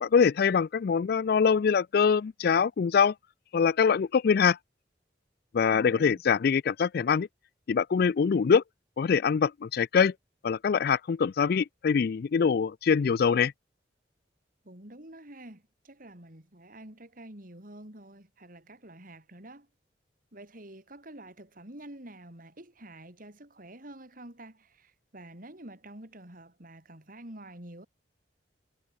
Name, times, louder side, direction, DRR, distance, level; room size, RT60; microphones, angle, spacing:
voice 1, 0.0-3.1 3.5-4.6 5.5-7.3 7.7-8.6 9.0-10.1 10.4-13.5, left 6 dB, 60° left, 0.4 m, -24 dB
voice 2, 5.7-6.2 14.6-19.7 20.3-27.9, right 1 dB, 50° right, 4.6 m, -48 dB
head